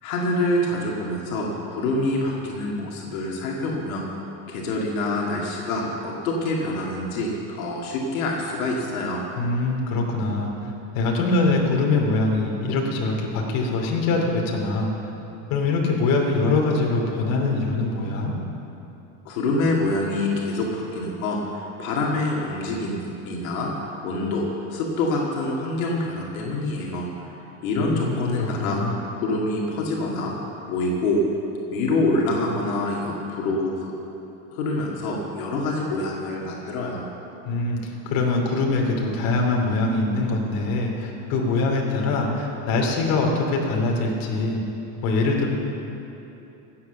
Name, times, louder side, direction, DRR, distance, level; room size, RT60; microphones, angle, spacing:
voice 1, 0.0-4.0 4.5-9.2 19.3-23.7 24.0-24.4 24.7-27.3 27.6-28.8 29.2-30.3 30.7-31.2 31.7-33.9 34.5-37.0, left 2 dB, 90° left, -2 dB, 2.3 m, -26 dB
voice 2, 9.4-14.9 15.5-18.3 27.8-28.9 37.4-44.6 45.0-45.5, left 3 dB, 55° left, 0 dB, 2.8 m, -23 dB
16.0 x 8.5 x 6.7 m, 3.0 s
supercardioid pair, 135°, 40 cm